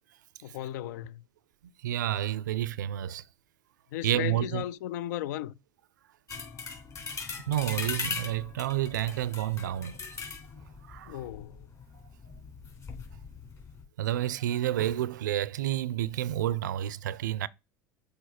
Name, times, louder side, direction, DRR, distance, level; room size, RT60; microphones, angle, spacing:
voice 1, 0.4-1.2 3.9-5.5 11.1-11.7, left 13 dB, 75° left, 0.4 m, -35 dB
voice 2, 1.8-3.2 4.0-4.6 7.5-10.0 10.9-11.2 14.0-17.5, right 12 dB, 85° right, 0.4 m, -30 dB
sound 1, 6.3-13.8, left 4 dB, 35° left, 3.4 m, -40 dB
6.8 x 4.4 x 4.2 m
hypercardioid pair, 75°, 10 cm